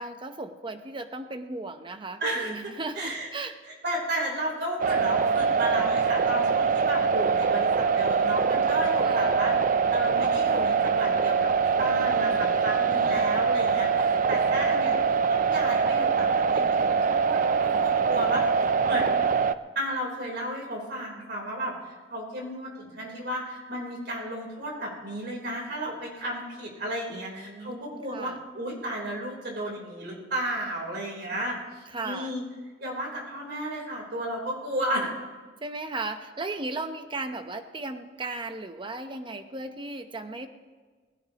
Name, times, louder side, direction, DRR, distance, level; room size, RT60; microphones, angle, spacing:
voice 1, 0.0-3.6 9.0-9.4 12.7-13.4 27.1-28.4 31.9-32.3 35.6-40.5, right 2 dB, 30° right, 8 dB, 0.9 m, -36 dB
voice 2, 2.2-2.7 3.0-3.3 3.8-9.6 9.9-19.5 19.8-32.4 32.8-35.1, right 1 dB, 60° right, -1 dB, 3.7 m, -33 dB
sound 1, 4.8-19.5, right 5 dB, 45° right, 0.4 m, -23 dB
19.0 x 16.0 x 2.9 m, 1.4 s
head